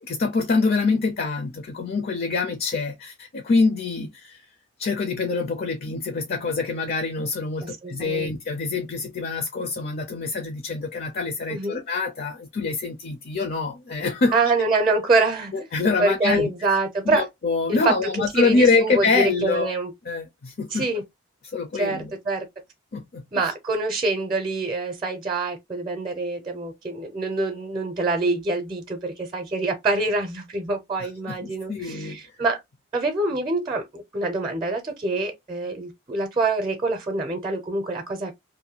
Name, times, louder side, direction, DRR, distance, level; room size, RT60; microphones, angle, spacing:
voice 1, 0.0-4.5 4.8-14.4 15.5-16.8 17.0-19.7 20.0-20.9 21.4-22.1 22.9-23.5 31.0-32.3, left 4 dB, 55° left, 0.5 m, -25 dB
voice 2, 7.6-8.3 11.5-11.8 14.3-15.7 16.0-17.3 17.7-17.9 18.3-19.9 20.7-21.0 21.8-22.5 23.3-32.6 32.9-38.3, right 3 dB, 25° right, 0.6 m, -25 dB
2.6 x 2.2 x 2.7 m
head